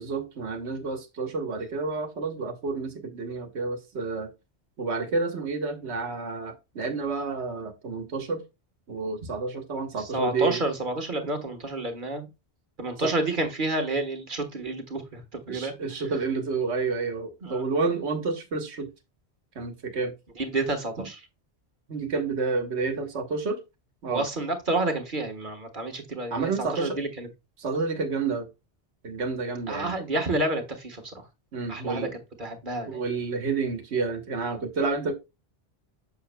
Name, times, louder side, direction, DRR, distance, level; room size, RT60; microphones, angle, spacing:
voice 1, 0.0-4.3 4.8-8.4 8.9-10.6 13.0-13.1 15.5-18.9 19.5-20.1 21.9-23.6 24.0-24.3 26.3-27.0 27.6-28.5 29.0-29.9 31.5-32.1 32.9-35.1, right 4 dB, 90° right, 1.4 m, -29 dB
voice 2, 10.0-12.3 12.8-15.7 17.4-17.6 20.4-21.2 24.1-27.3 29.7-31.2 31.7-32.1 32.4-33.0, right 2 dB, 50° right, 1.6 m, -29 dB
7.1 x 6.6 x 2.2 m
omnidirectional pair, 1.1 m